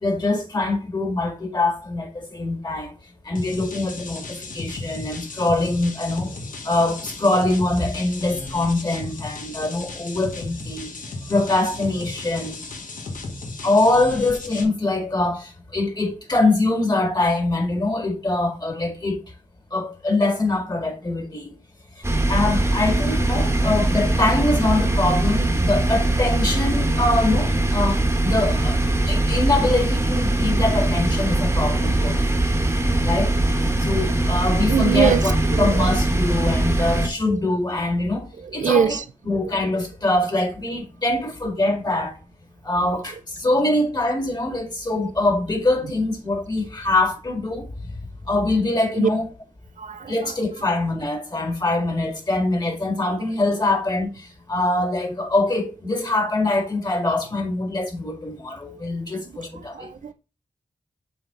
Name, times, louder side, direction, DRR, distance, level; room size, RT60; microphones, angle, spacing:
voice 1, 0.0-2.9 3.3-6.3 6.6-10.9 11.3-12.6 13.6-19.2 19.7-21.5 22.3-28.8 29.1-32.1 33.0-33.4 33.8-38.3 38.5-39.0 39.3-42.1 42.6-47.7 48.3-49.3 50.1-54.1 54.5-59.9, left 2 dB, 30° left, 1.9 m, -23 dB
sound 1, 3.4-14.6, left 3 dB, 75° left, 1.1 m, -35 dB
sound 2, 22.0-37.1, right 1 dB, 20° right, 1.2 m, -21 dB
voice 2, 34.7-35.2 35.5-35.9 38.4-39.0 49.0-49.1 49.8-50.1 59.7-60.1, right 8 dB, 70° right, 0.6 m, -22 dB
7.0 x 3.6 x 3.8 m
wide cardioid pair, 105°, 14 cm